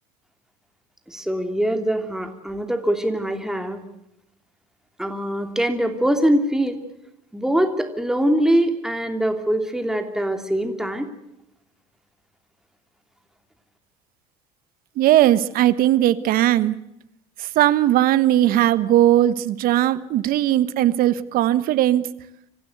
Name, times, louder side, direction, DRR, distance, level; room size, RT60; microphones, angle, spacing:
voice 1, 1.1-3.8 5.0-6.8 7.3-11.1, right 1 dB, 5° right, 6 dB, 3.0 m, -23 dB
voice 2, 15.0-16.7 17.4-22.0, right 13 dB, 60° right, 15 dB, 1.3 m, -18 dB
26.5 x 15.5 x 8.1 m, 0.84 s
hypercardioid pair, 75°, 17 cm